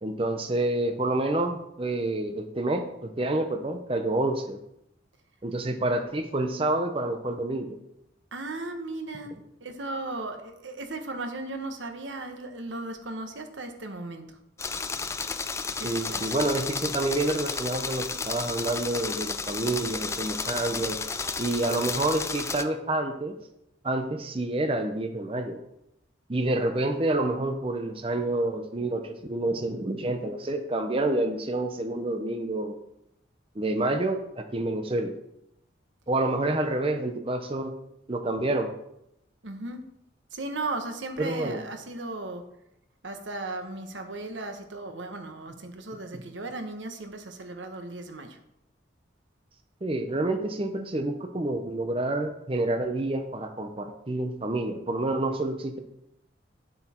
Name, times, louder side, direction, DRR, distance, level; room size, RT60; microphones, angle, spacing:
voice 1, 0.0-4.6 5.4-7.8 15.8-21.0 21.4-23.4 23.8-25.6 26.3-32.8 33.5-35.1 36.1-37.8 38.1-38.7 41.2-41.6 45.9-46.2 49.8-55.8, right 2 dB, 30° right, 6 dB, 0.7 m, -28 dB
voice 2, 8.3-14.4 15.8-16.3 39.4-39.9 40.3-42.4 43.0-48.4, right 2 dB, 80° right, 6 dB, 1.2 m, -36 dB
sound 1, 14.6-22.6, left 4 dB, 15° left, 0.4 m, -32 dB
9.5 x 7.8 x 4.4 m, 0.82 s
head